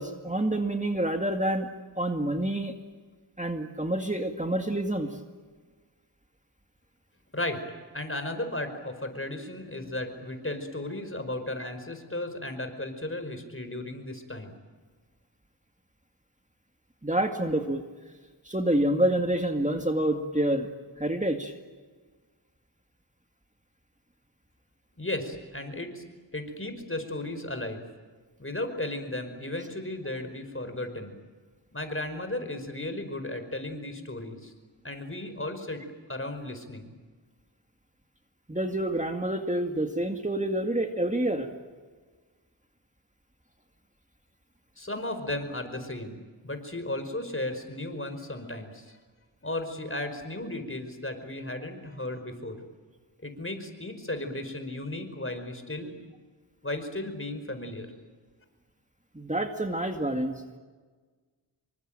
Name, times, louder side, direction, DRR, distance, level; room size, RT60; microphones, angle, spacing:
voice 1, 0.0-1.7 2.0-2.7 3.4-5.2 17.0-17.8 18.4-20.7 21.0-21.5 38.5-41.5 59.1-60.4, right 1 dB, 15° right, 4 dB, 2.1 m, -27 dB
voice 2, 7.3-7.6 7.9-14.5 25.0-26.0 26.3-27.8 28.4-31.2 31.7-34.5 34.8-35.8 36.1-36.9 44.8-49.0 49.4-52.6 53.2-55.9 56.6-57.9, left 1 dB, 30° left, 7 dB, 5.2 m, -35 dB
27.5 x 24.0 x 9.0 m, 1.4 s
wide cardioid pair, 60°, 45 cm